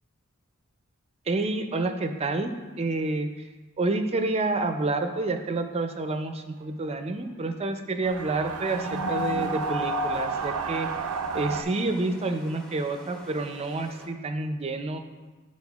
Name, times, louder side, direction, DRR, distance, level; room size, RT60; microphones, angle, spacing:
voice 1, 1.3-3.4 3.8-11.1 11.3-15.0, right 2 dB, 30° right, 7 dB, 0.4 m, -29 dB
sound 1, 8.0-11.6, right 3 dB, 90° right, 0.4 m, -30 dB
sound 2, 8.6-14.1, equal, 5° left, 0.7 m, -48 dB
10.5 x 4.2 x 2.4 m, 1.3 s
head